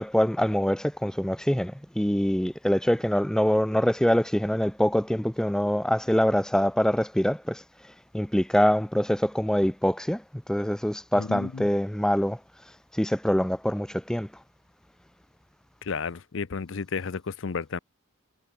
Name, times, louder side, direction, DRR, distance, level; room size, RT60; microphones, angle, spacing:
voice 1, 0.0-12.4 12.9-14.3, equal, 5° left, 0.4 m, -25 dB
voice 2, 11.2-11.7 15.8-17.8, left 5 dB, 65° left, 0.6 m, -32 dB
head